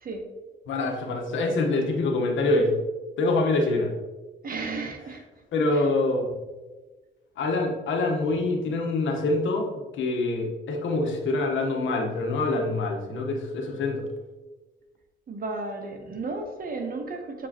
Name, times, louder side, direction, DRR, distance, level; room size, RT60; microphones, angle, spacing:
voice 1, 0.7-2.7 3.2-3.9 5.5-6.3 7.4-9.7 9.9-14.0, left 2 dB, 75° left, 2 dB, 1.2 m, -25 dB
voice 2, 4.4-5.2 5.7-5.8 15.3-17.5, right 3 dB, 45° right, 5 dB, 1.0 m, -33 dB
7.1 x 4.8 x 2.9 m, 1.2 s
cardioid pair, 90°, 20 cm